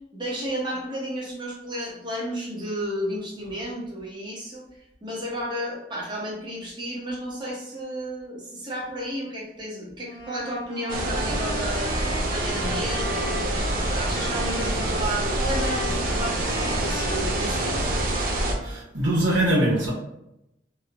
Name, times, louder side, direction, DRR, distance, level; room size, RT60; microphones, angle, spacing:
voice 1, 0.1-4.6 5.0-11.9 12.3-18.0, equal, 25° right, -4 dB, 0.7 m, -32 dB
Wind instrument woodwind instrument, 10.0-18.8, left 1 dB, 30° left, 0.9 m, -37 dB
sound 1, 10.9-18.6, right 1 dB, 50° right, 0.4 m, -26 dB
voice 2, 18.6-19.9, right 1 dB, 90° right, -3 dB, 0.9 m, -22 dB
3.0 x 2.0 x 2.4 m, 0.85 s
head